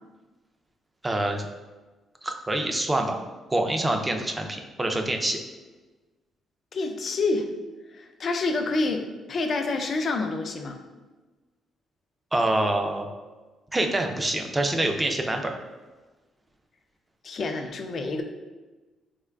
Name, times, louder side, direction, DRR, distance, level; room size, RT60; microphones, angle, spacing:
voice 1, 1.0-1.5 2.2-3.2 3.5-5.4 12.3-13.1 13.7-15.5, right 1 dB, 15° right, 4 dB, 0.4 m, -26 dB
voice 2, 6.7-7.5 7.9-10.8 17.2-18.2, left 3 dB, 50° left, 5 dB, 0.4 m, -28 dB
3.5 x 3.0 x 2.2 m, 1.2 s
cardioid pair, 90°, 0 cm